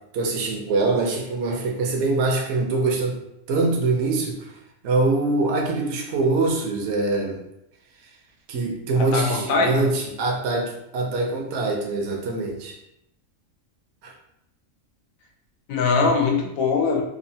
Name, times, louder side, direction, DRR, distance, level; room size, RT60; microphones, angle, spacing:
voice 1, 0.1-3.2 3.5-4.5 4.8-7.4 8.5-12.8 14.0-14.1, right 3 dB, 65° right, 0 dB, 0.8 m, -24 dB
voice 2, 9.0-9.9 15.7-17.0, left 4 dB, 85° left, 2 dB, 1.0 m, -22 dB
2.9 x 2.4 x 2.7 m, 0.82 s
omnidirectional pair, 1.4 m